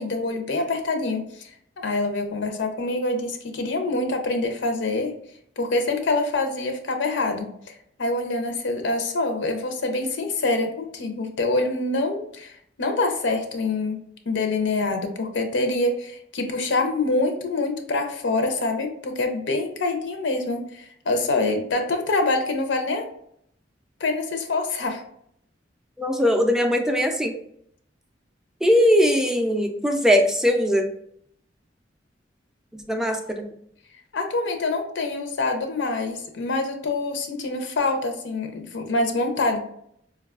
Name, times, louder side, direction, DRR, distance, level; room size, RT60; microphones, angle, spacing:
voice 1, 0.0-1.5 1.8-5.1 5.6-7.7 8.0-14.0 14.3-23.1 24.0-25.0 34.1-39.7, left 2 dB, 85° left, 4 dB, 0.6 m, -25 dB
voice 2, 26.0-27.3 28.6-30.9 32.7-33.5, equal, 5° right, 4 dB, 0.3 m, -20 dB
4.5 x 2.3 x 2.3 m, 0.69 s
head